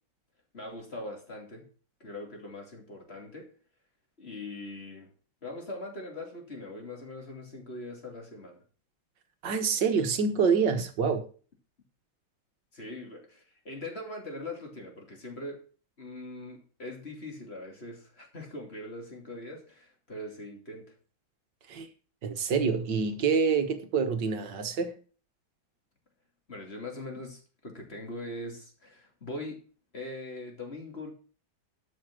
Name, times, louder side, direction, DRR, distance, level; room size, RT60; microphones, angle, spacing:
voice 1, 0.5-1.6 2.0-3.5 4.2-5.1 5.4-8.6 12.7-15.6 16.0-20.8 26.5-29.6 29.9-31.1, left 1 dB, 30° left, 3.0 m, -41 dB
voice 2, 9.4-11.3 21.7-21.9 22.2-25.0, right 5 dB, 60° right, 1.8 m, -26 dB
12.5 x 5.8 x 6.2 m
omnidirectional pair, 2.2 m